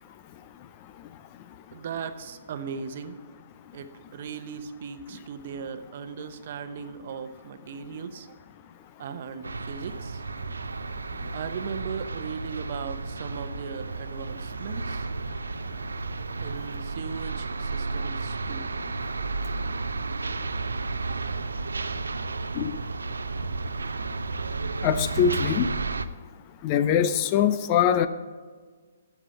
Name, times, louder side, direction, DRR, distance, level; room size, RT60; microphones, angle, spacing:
voice 1, 1.7-3.2 3.7-8.3 9.0-10.2 11.3-15.1 16.4-18.7, right 6 dB, 50° right, 10 dB, 0.9 m, -37 dB
sound 1, 9.4-26.1, right 3 dB, 80° right, 0.5 m, -32 dB
voice 2, 24.8-25.7 26.6-28.1, left 9 dB, 35° left, 12 dB, 0.6 m, -23 dB
12.0 x 7.2 x 5.8 m, 1.5 s
figure-of-eight pair, 130°, 0 cm